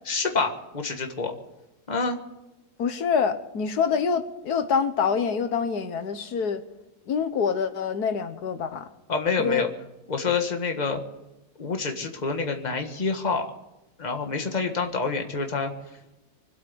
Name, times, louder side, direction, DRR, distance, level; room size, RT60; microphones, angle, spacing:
voice 1, 0.0-1.3 1.9-2.2 9.1-9.7 10.1-11.0 11.6-13.5 14.0-15.7, left 4 dB, 30° left, 4 dB, 1.7 m, -27 dB
voice 2, 2.8-6.6 7.1-8.9 9.4-9.7, left 6 dB, 85° left, 9 dB, 1.7 m, -26 dB
24.5 x 8.4 x 7.0 m, 0.99 s
omnidirectional pair, 1.6 m